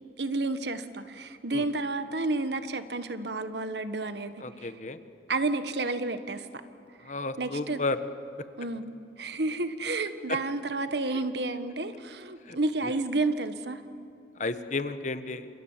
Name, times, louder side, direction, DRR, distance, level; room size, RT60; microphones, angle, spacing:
voice 1, 0.2-4.3 4.6-4.7 5.3-6.5 7.0-7.1 7.4-7.8 8.6-8.9 9.2-13.8, right 2 dB, 75° right, 10 dB, 1.5 m, -31 dB
voice 2, 4.4-5.0 7.0-8.0 10.3-10.4 12.5-12.6 12.8-12.9 14.4-15.5, left 3 dB, 45° left, 10 dB, 1.3 m, -32 dB
29.5 x 27.0 x 7.4 m, 2.5 s
head